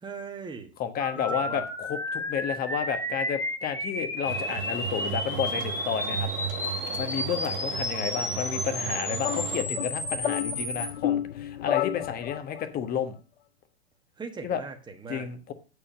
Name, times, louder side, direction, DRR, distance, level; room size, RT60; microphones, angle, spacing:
voice 1, 0.0-0.7 1.1-1.6 14.2-15.3, right 5 dB, 15° right, 5 dB, 1.5 m, -39 dB
voice 2, 0.8-6.3 7.0-13.1 14.4-14.6 15.1-15.5, left 8 dB, 30° left, 9 dB, 1.3 m, -31 dB
sound 1, 1.0-10.9, left 1 dB, 10° left, 1.8 m, -32 dB
sound 2, 4.2-9.6, right 12 dB, 55° right, 0.9 m, -35 dB
sound 3, 9.2-12.7, left 12 dB, 75° left, 0.5 m, -31 dB
8.5 x 4.9 x 6.5 m, 0.35 s
figure-of-eight pair, 95°, 32 cm